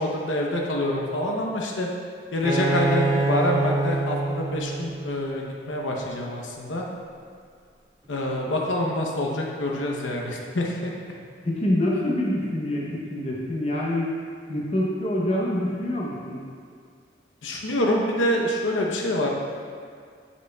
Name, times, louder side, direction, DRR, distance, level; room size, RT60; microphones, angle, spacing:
voice 1, 0.0-1.9 2.3-6.8 8.1-10.9 17.4-19.3, left 1 dB, 90° left, -1 dB, 0.8 m, -26 dB
Bowed string instrument, 2.4-6.0, right 3 dB, 20° right, 0.4 m, -26 dB
voice 2, 11.4-14.1 14.5-16.5, left 1 dB, 35° left, -3 dB, 0.7 m, -26 dB
7.8 x 6.1 x 2.3 m, 2.1 s
head